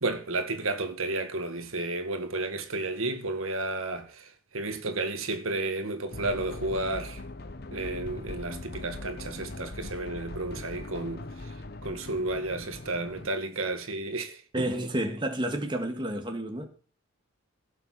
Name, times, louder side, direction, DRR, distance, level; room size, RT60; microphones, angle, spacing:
voice 1, 0.0-4.2 4.5-7.2 7.7-11.2 11.8-14.9, right 2 dB, 75° right, 1.9 m, -32 dB
sound 1, 6.1-13.3, left 2 dB, 45° left, 0.9 m, -41 dB
voice 2, 14.5-16.7, right 1 dB, 20° right, 1.7 m, -30 dB
17.0 x 7.0 x 6.1 m
head